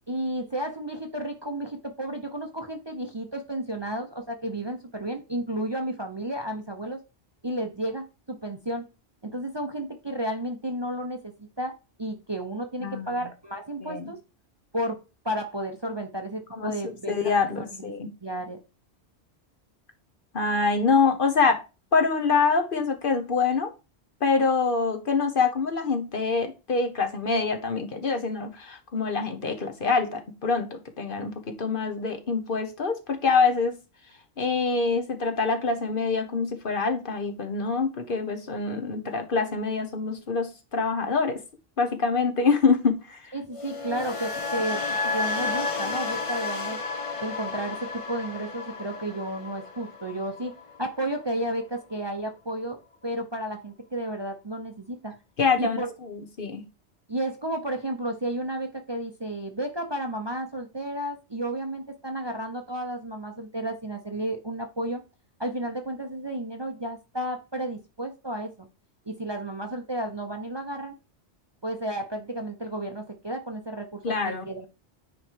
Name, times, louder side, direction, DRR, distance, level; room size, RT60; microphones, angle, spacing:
voice 1, 0.1-7.0 7.4-8.8 9.3-14.2 14.7-15.0 15.2-17.1 18.2-18.6 43.3-44.8 45.1-46.8 47.2-50.5 50.8-52.8 53.0-55.1 55.6-55.9 57.1-65.0 65.4-68.7 69.1-70.9 71.6-74.7, right 1 dB, 25° right, 4 dB, 0.8 m, -32 dB
voice 2, 12.8-13.2 13.8-14.0 16.5-18.1 20.3-21.6 21.9-23.7 24.2-33.8 34.4-41.4 41.8-43.3 55.4-56.6 74.0-74.4, left 4 dB, 50° left, 6 dB, 1.1 m, -25 dB
sound 1, 43.5-51.6 51.9-52.3, left 3 dB, 35° left, 0.7 m, -32 dB
9.3 x 3.2 x 4.6 m, 0.29 s
omnidirectional pair, 1.2 m